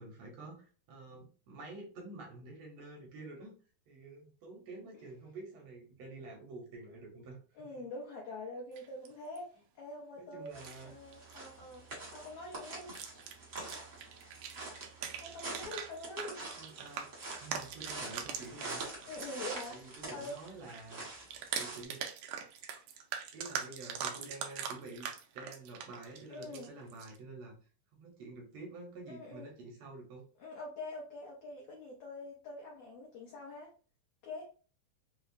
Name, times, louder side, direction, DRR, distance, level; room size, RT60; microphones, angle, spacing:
voice 1, 0.0-3.5 3.9-7.9 10.2-10.9 16.6-17.1 17.4-18.9 19.7-21.0 21.5-22.1 23.3-27.5 27.9-30.2, right 3 dB, 75° right, 0 dB, 1.6 m, -49 dB
voice 2, 7.6-10.5 10.8-11.9 12.1-12.9 15.2-16.4 19.1-20.4 26.3-26.7 29.1-29.5 30.4-33.7 34.2-34.5, left 2 dB, 75° left, -2 dB, 1.5 m, -45 dB
sound 1, 8.8-9.4 10.5-10.8 11.1-11.4 11.7-12.0 12.8-19.8 20.1-27.2, right 8 dB, 90° right, 1.5 m, -42 dB
sound 2, 10.5-21.8, right 2 dB, 50° right, 0.9 m, -46 dB
5.0 x 2.0 x 2.5 m, 0.38 s
omnidirectional pair, 3.6 m